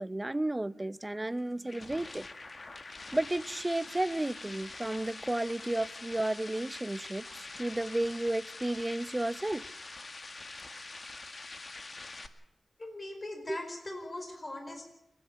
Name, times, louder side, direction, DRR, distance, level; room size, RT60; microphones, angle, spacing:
voice 1, 0.0-2.2 3.1-9.6 13.5-13.6, right 1 dB, 25° right, 0.8 m, -32 dB
sound 1, 1.3-12.3, left 3 dB, 55° left, 1.9 m, -45 dB
voice 2, 12.8-14.9, left 1 dB, 40° left, 4.9 m, -40 dB
29.5 x 10.5 x 8.9 m
cardioid pair, 40°, 0 cm